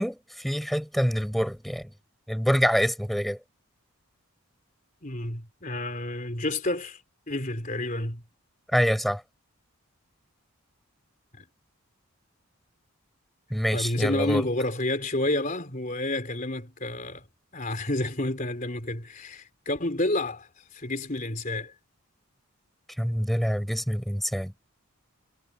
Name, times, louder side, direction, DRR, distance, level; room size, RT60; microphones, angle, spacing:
voice 1, 0.0-1.9 2.3-3.4 8.7-9.2 13.5-14.4 23.0-24.5, equal, ahead, 5.2 m, -26 dB
voice 2, 5.0-7.0 7.3-8.2 11.3-11.4 13.7-17.3 17.5-21.7, left 1 dB, 35° left, 3.9 m, -30 dB
head